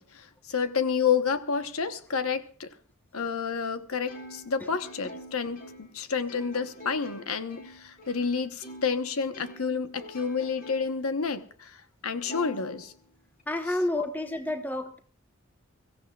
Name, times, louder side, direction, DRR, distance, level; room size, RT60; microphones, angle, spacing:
voice 1, 0.0-2.7 3.1-12.9, left 6 dB, 85° left, 1.1 m, -30 dB
Plucked string instrument, 4.1-9.0 9.3-11.1 11.5-11.6 12.3-13.4, equal, 40° left, 2.7 m, -46 dB
voice 2, 13.5-15.0, left 1 dB, 10° left, 1.1 m, -29 dB
23.5 x 15.0 x 2.4 m
head